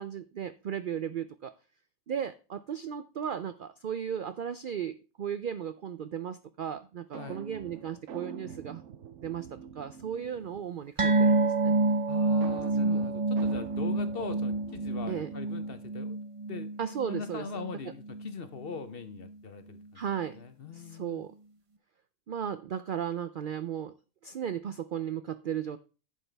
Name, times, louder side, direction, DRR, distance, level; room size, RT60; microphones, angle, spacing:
voice 1, 0.0-1.5 2.1-8.8 9.2-11.7 12.8-13.0 15.1-15.3 16.8-17.5 19.9-20.4 20.7-21.3 22.3-23.9 24.2-25.8, right 8 dB, 80° right, 0.4 m, -35 dB
sound 1, 7.1-10.9 12.4-16.0, right 8 dB, 60° right, 0.9 m, -45 dB
sound 2, 11.0-17.8 18.1-18.3 18.7-18.8, right 2 dB, 35° right, 0.6 m, -28 dB
voice 2, 12.1-16.2 16.5-16.7 17.1-20.0 20.3-21.2, left 5 dB, 50° left, 0.9 m, -41 dB
11.0 x 7.5 x 3.3 m
omnidirectional pair, 1.5 m